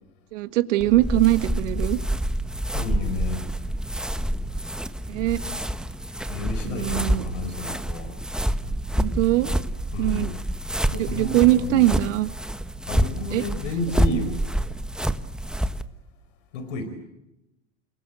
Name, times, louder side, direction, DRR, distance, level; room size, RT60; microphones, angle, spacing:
voice 1, 0.3-2.0 5.1-5.4 6.6-7.2 9.0-9.5 10.0-10.3 10.9-12.3 13.3-13.4 14.1-14.2, right 16 dB, 75° right, 11 dB, 1.6 m, -22 dB
sound 1, 0.8-15.8, right 1 dB, ahead, 1.2 m, -27 dB
voice 2, 2.7-3.5 6.3-8.2 9.9-10.4 10.7-11.9 12.9-14.4 16.5-16.9, left 3 dB, 80° left, 9 dB, 4.7 m, -31 dB
30.0 x 20.0 x 7.8 m, 0.91 s
hypercardioid pair, 95°, 36 cm